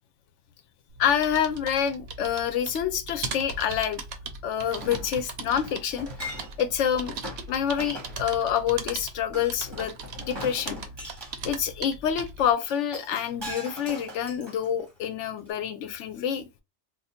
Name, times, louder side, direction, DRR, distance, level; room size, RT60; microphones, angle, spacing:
sound 1, 0.9-12.5, right 4 dB, 65° right, 0.9 m, -39 dB
voice 1, 1.0-4.0 4.4-6.1 6.6-7.2 7.5-9.9 10.2-10.8 11.4-16.4, left 9 dB, 85° left, 0.9 m, -27 dB
Chink clink, 4.8-6.7 7.2-7.4 7.8-8.2 9.3-11.3 12.7-15.0 15.5-15.6, left 1 dB, 25° right, 1.1 m, -40 dB
2.6 x 2.4 x 4.1 m
omnidirectional pair, 1.2 m